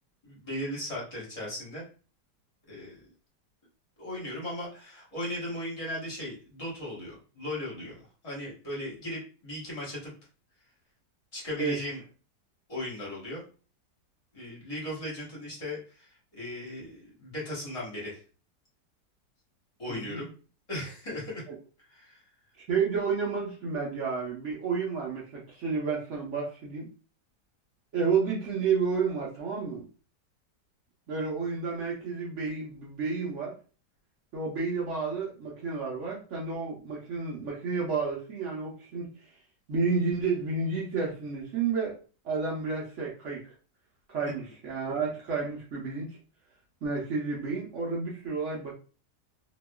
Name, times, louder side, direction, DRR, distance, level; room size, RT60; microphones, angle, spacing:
voice 1, 0.2-1.8 2.7-3.1 4.0-8.0 8.2-10.1 11.3-12.0 12.7-13.4 14.3-18.2 19.8-20.3 20.7-21.4 21.9-22.2 44.4-44.5, left 1 dB, 25° left, -5 dB, 0.9 m, -37 dB
voice 2, 19.9-20.2 22.7-26.9 27.9-29.9 31.1-33.5 34.3-39.1 39.7-42.0 42.2-43.4 44.1-46.1 46.8-48.7, right 5 dB, 60° right, -4 dB, 0.9 m, -31 dB
2.8 x 2.3 x 2.2 m, 0.37 s
omnidirectional pair, 1.8 m